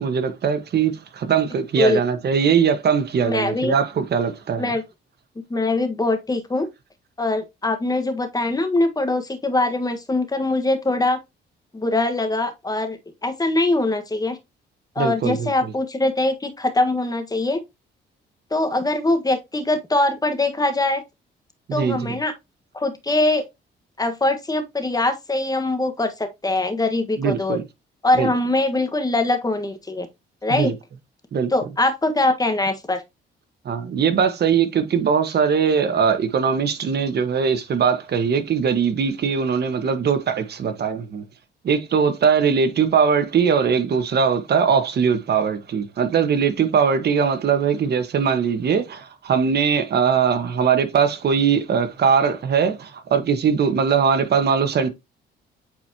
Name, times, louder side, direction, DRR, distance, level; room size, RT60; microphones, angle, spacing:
voice 1, 0.0-4.7 15.0-15.7 21.7-22.1 27.2-27.6 28.1-28.3 30.5-30.7 31.3-31.5 33.6-41.2 41.6-54.9, right 6 dB, 55° right, 1.4 m, -21 dB
voice 2, 3.2-3.8 4.6-4.8 5.4-6.7 7.2-11.2 11.7-14.4 14.9-17.6 18.5-21.0 21.7-22.3 22.7-23.4 24.0-27.6 28.0-30.1 30.4-30.7 31.5-33.0, left 2 dB, 20° left, 1.4 m, -22 dB
8.3 x 4.6 x 2.8 m
cardioid pair, 90°, 20 cm